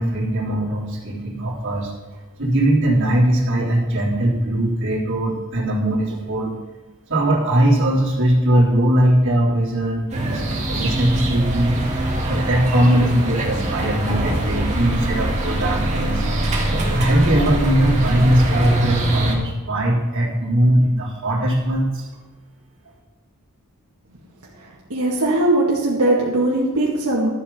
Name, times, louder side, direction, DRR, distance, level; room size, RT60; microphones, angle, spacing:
voice 1, 0.0-1.9 2.4-6.6 7.1-11.8 12.3-16.2 16.9-22.0, right 1 dB, 60° right, -4 dB, 3.6 m, -20 dB
sound 1, 10.1-19.3, right 1 dB, 30° right, 2.3 m, -23 dB
voice 2, 24.6-27.3, right 2 dB, 85° right, -5 dB, 2.4 m, -20 dB
13.0 x 8.1 x 5.7 m, 1.2 s
head